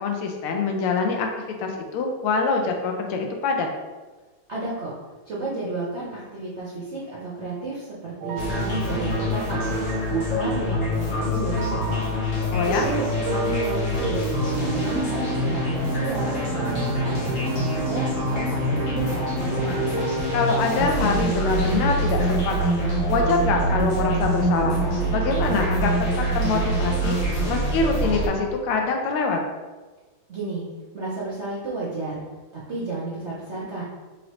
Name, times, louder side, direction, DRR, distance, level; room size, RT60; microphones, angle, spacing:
voice 1, 0.0-1.3 1.6-3.7 12.5-12.9 20.3-22.8 23.1-24.8 25.1-25.9 26.3-27.2 27.5-29.4, left 4 dB, 85° left, 3 dB, 1.6 m, -24 dB
voice 2, 4.5-4.9 5.2-9.6 10.1-12.0 12.6-19.9 30.3-30.7 30.9-32.2 32.5-33.8, right 3 dB, 60° right, -7 dB, 0.7 m, -32 dB
sound 1, 8.2-27.1, right 4 dB, 90° right, 1.5 m, -34 dB
sound 2, 8.4-28.3, equal, 45° left, 1.3 m, -25 dB
5.1 x 3.2 x 3.0 m, 1.3 s
omnidirectional pair, 2.4 m